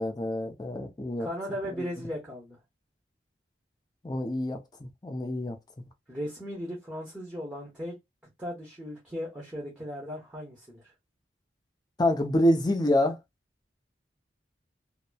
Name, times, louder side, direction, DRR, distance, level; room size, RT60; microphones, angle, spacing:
voice 1, 0.0-1.3 4.0-5.6 12.0-13.2, left 1 dB, 20° left, 0.5 m, -27 dB
voice 2, 1.2-2.6 6.1-7.9 8.4-10.8, equal, 5° right, 0.9 m, -37 dB
2.9 x 2.0 x 2.2 m
head